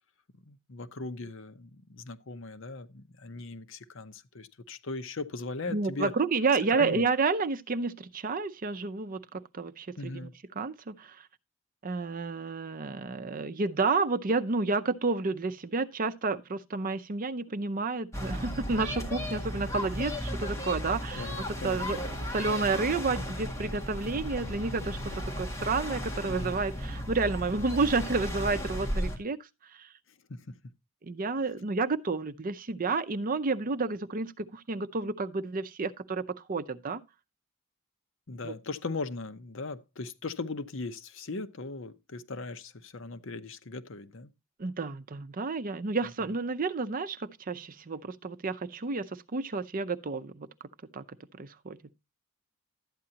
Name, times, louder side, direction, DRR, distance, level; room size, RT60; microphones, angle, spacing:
voice 1, 0.5-6.1 6.7-7.1 10.0-10.3 21.2-21.8 26.3-26.6 30.3-30.6 38.3-44.3, left 3 dB, 70° left, 0.8 m, -38 dB
voice 2, 5.7-10.3 10.6-11.3 11.8-29.9 31.0-37.0 38.4-38.5 44.6-50.5 50.9-51.8, right 4 dB, 45° right, 0.6 m, -31 dB
sound 1, 18.1-29.2, equal, 15° left, 1.9 m, -35 dB
12.5 x 8.8 x 2.8 m
head